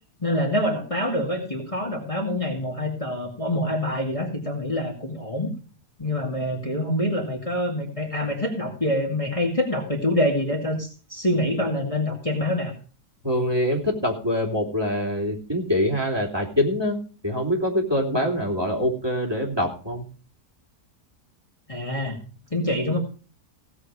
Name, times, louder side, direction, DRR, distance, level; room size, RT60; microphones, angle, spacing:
voice 1, 0.2-5.5 6.0-12.7 21.7-22.2 22.5-23.0, left 1 dB, 20° left, -1 dB, 2.2 m, -26 dB
voice 2, 13.2-17.0 17.2-20.0, left 1 dB, 15° right, -1 dB, 3.1 m, -24 dB
17.0 x 7.7 x 4.8 m, 0.38 s
omnidirectional pair, 1.6 m